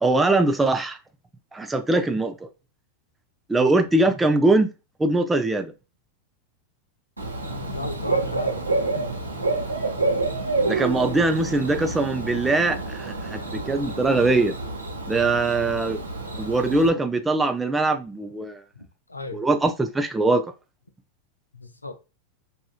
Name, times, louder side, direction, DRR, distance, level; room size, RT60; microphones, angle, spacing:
voice 1, 0.0-1.0 1.5-2.5 3.5-4.7 5.0-5.7 10.7-14.5 15.1-16.0 16.4-18.6 19.3-20.4, right 2 dB, 10° right, 0.4 m, -22 dB
Bird / Cricket, 7.2-16.9, right 3 dB, 85° right, 0.9 m, -28 dB
voice 2, 7.7-9.2 18.8-19.4 21.5-22.0, left 3 dB, 80° left, 0.5 m, -36 dB
4.7 x 2.6 x 2.3 m
figure-of-eight pair, 90°, 0 cm